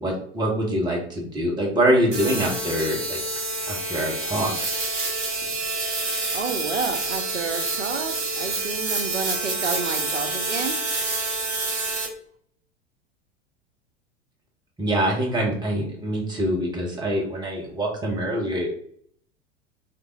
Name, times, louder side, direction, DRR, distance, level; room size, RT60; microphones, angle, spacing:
voice 1, 0.0-3.2 3.7-4.5 14.8-18.7, right 1 dB, 10° right, -2 dB, 1.0 m, -24 dB
sound 1, 2.1-12.1, right 2 dB, 35° right, 1.4 m, -28 dB
voice 2, 6.3-10.8, right 4 dB, 90° right, 7 dB, 0.5 m, -30 dB
3.3 x 2.5 x 3.0 m, 0.62 s
figure-of-eight pair, 85°, 35 cm